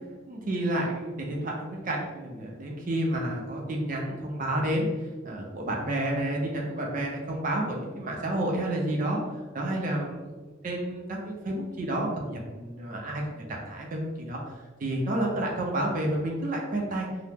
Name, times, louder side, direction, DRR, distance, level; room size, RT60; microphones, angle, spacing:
voice 1, 0.3-9.2 9.5-14.5 14.8-17.1, right 1 dB, 45° right, -1 dB, 0.5 m, -30 dB
2.8 x 2.0 x 3.4 m, 1.2 s
head